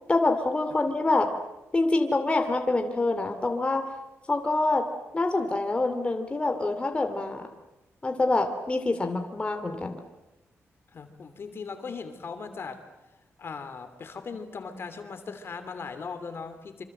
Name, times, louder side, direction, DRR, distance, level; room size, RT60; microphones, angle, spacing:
voice 1, 0.1-1.3 1.7-3.8 4.3-4.8 5.1-7.5 8.0-10.0, left 2 dB, 20° left, 5 dB, 2.6 m, -26 dB
voice 2, 10.9-12.8 13.4-16.8, left 5 dB, 50° left, 9 dB, 2.9 m, -38 dB
26.5 x 25.5 x 7.8 m, 0.98 s
wide cardioid pair, 130°, 5 cm